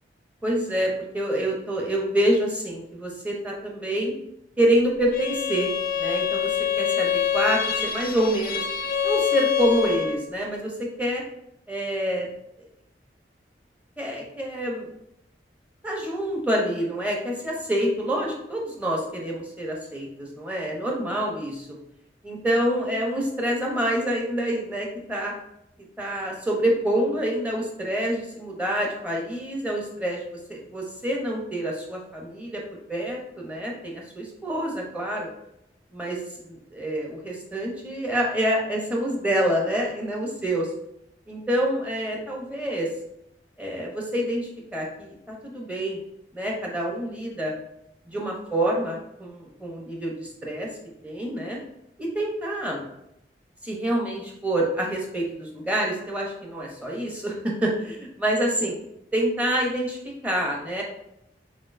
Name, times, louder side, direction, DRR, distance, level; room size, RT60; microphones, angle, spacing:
voice 1, 0.4-4.1 4.6-5.7 6.0-8.7 9.0-11.2 11.7-12.3 12.6-12.7 14.0-14.9 15.8-21.7 22.2-25.3 26.0-30.2 30.5-32.6 32.9-35.3 35.9-36.2 36.5-40.7 41.3-42.9 43.6-46.0 46.3-47.5 48.1-50.7 51.0-51.6 52.0-52.8 53.6-58.8 59.1-60.8, right 1 dB, 10° right, -2 dB, 0.8 m, -27 dB
Bowed string instrument, 5.1-10.3, left 8 dB, 50° left, 0.4 m, -25 dB
4.3 x 3.8 x 2.6 m, 0.81 s
head